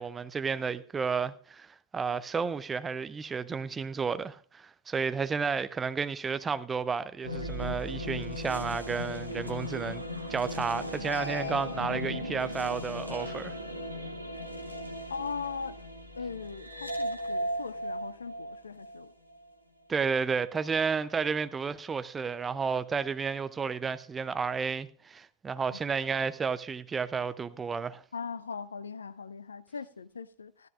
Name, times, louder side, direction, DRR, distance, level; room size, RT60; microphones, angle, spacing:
voice 1, 0.0-1.7 1.9-10.0 10.3-13.5 19.9-28.0, right 5 dB, 15° right, 0.6 m, -32 dB
sound 1, 7.2-19.4, equal, 90° right, 1.2 m, -37 dB
voice 2, 15.1-15.8 16.2-19.1 25.7-25.8 28.1-30.7, left 5 dB, 75° left, 0.5 m, -39 dB
14.5 x 13.5 x 2.5 m
figure-of-eight pair, 90°, 0 cm